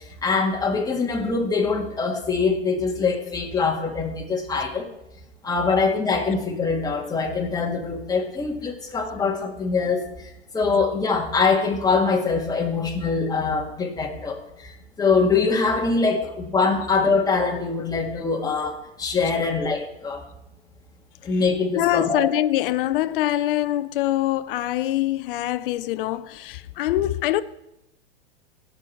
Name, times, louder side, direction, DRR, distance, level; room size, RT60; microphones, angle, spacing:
voice 1, 0.2-4.9 5.4-10.1 10.5-14.7 15.0-20.2 21.2-22.2, left 4 dB, 10° left, 1.9 m, -23 dB
voice 2, 21.7-27.4, left 14 dB, 50° left, 0.7 m, -24 dB
17.0 x 6.2 x 4.5 m
hypercardioid pair, 110°, 34 cm